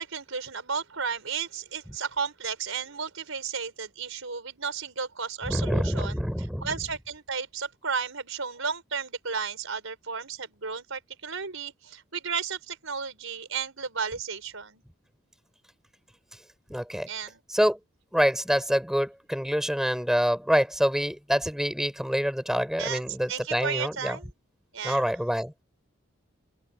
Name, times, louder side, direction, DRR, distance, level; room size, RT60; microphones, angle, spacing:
voice 1, 0.0-6.1 6.6-14.8 17.1-17.4 22.8-23.0 23.3-24.3 24.7-25.1, right 6 dB, 90° right, 5.2 m, -33 dB
voice 2, 5.5-6.7 16.7-17.1 17.5-17.8 18.1-24.2 24.8-25.5, equal, ahead, 6.0 m, -26 dB
open air
head